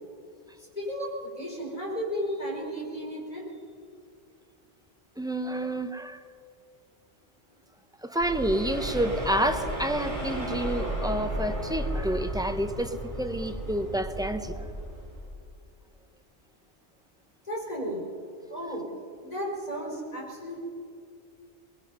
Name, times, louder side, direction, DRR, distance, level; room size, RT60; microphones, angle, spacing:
voice 1, 0.6-3.4 17.4-18.0 18.5-18.8 19.2-20.6, equal, 35° left, -2 dB, 4.7 m, -34 dB
voice 2, 5.2-6.2 8.0-14.6, right 1 dB, 5° right, 7 dB, 0.7 m, -29 dB
sound 1, 8.2-15.3, equal, 25° right, 4.4 m, -34 dB
22.5 x 21.0 x 5.5 m, 2.3 s
omnidirectional pair, 1.2 m